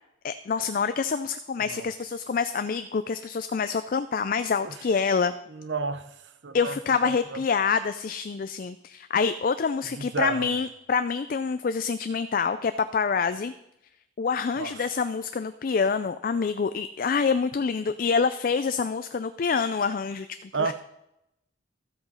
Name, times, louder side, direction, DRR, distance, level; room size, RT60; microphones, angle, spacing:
voice 1, 0.2-5.3 6.5-13.5 14.2-20.7, left 5 dB, 45° left, 0.4 m, -26 dB
voice 2, 5.5-7.4 9.9-10.6 14.6-14.9 20.5-20.7, right 4 dB, 75° right, 0.9 m, -32 dB
13.5 x 7.9 x 5.5 m
head